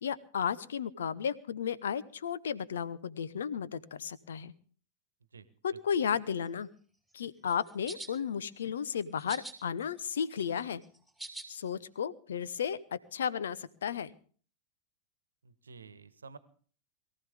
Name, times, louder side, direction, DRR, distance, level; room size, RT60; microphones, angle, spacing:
voice 1, 0.0-4.5 5.6-6.7 7.1-10.8 11.5-14.1, left 7 dB, 65° left, 18 dB, 0.9 m, -34 dB
sound 1, 7.5-8.1 9.2-9.5 10.0-11.5, right 2 dB, ahead, 3.1 m, -44 dB
voice 2, 15.4-16.4, right 5 dB, 75° right, 14 dB, 1.2 m, -50 dB
22.0 x 15.0 x 3.6 m, 0.43 s
figure-of-eight pair, 90°, 0 cm